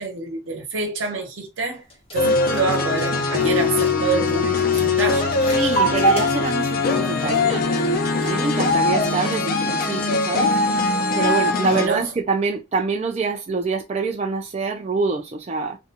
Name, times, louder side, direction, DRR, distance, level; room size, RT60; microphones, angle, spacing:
voice 1, 0.0-1.8 2.1-5.4 11.7-12.1, right 3 dB, 85° right, 0.9 m, -26 dB
sound 1, 1.8-9.0, right 3 dB, 30° left, 0.9 m, -27 dB
sound 2, 2.2-11.9, left 3 dB, 45° left, 0.4 m, -21 dB
voice 2, 5.6-7.9 8.2-10.5 11.1-15.8, right 4 dB, 35° right, 0.3 m, -25 dB
2.5 x 2.2 x 2.8 m
head